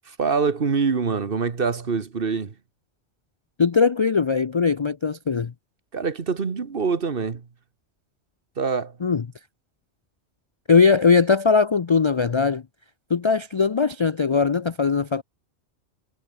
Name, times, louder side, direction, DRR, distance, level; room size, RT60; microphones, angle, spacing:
voice 1, 0.1-2.5 5.9-7.5 8.6-9.0, right 5 dB, 55° right, 1.5 m, -25 dB
voice 2, 3.6-5.5 9.0-9.2 10.7-12.6 13.1-15.2, left 5 dB, 40° left, 0.4 m, -20 dB
omnidirectional pair, 1.2 m